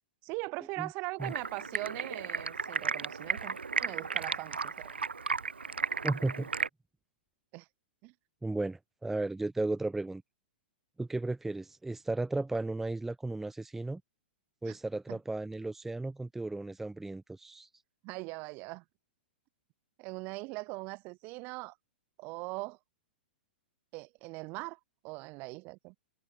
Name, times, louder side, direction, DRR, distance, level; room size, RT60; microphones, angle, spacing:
voice 1, 0.2-5.0 7.5-7.7 8.0-8.1 14.7-14.8 15.1-15.2 18.0-18.8 20.0-21.7 22.2-22.8 23.9-24.8 25.0-25.9, right 26 dB, 35° right, 1.0 m, -41 dB
Stream, 1.2-6.7, right 5 dB, 80° right, 0.4 m, -34 dB
voice 2, 6.0-6.5 8.4-10.2 11.0-14.0 14.6-17.7, right 2 dB, 5° right, 0.6 m, -34 dB
figure-of-eight pair, 105°, 6 cm